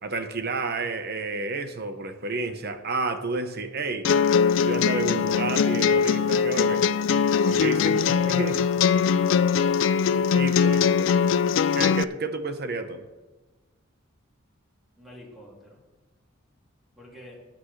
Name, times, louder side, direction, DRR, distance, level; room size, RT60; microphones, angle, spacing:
voice 1, 0.0-4.1 4.6-6.8 7.4-7.9 8.3-8.5 10.3-11.1 11.7-13.0, right 3 dB, 50° right, 8 dB, 1.0 m, -30 dB
sound 1, 4.0-12.0, left 6 dB, 65° left, 0.4 m, -21 dB
voice 2, 7.7-8.4 10.4-10.9 15.0-15.8 17.0-17.4, equal, ahead, -5 dB, 2.7 m, -44 dB
19.0 x 8.8 x 3.3 m, 1.2 s
head